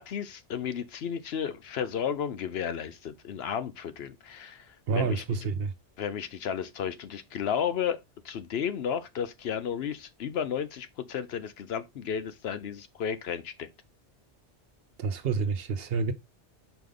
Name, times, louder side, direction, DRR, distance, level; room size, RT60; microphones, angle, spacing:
voice 1, 0.0-4.7 4.9-5.2 6.0-13.7, left 8 dB, 65° left, 0.8 m, -33 dB
voice 2, 4.9-5.7 15.0-16.1, right 5 dB, 60° right, 0.9 m, -28 dB
5.0 x 5.0 x 3.8 m
omnidirectional pair, 1.2 m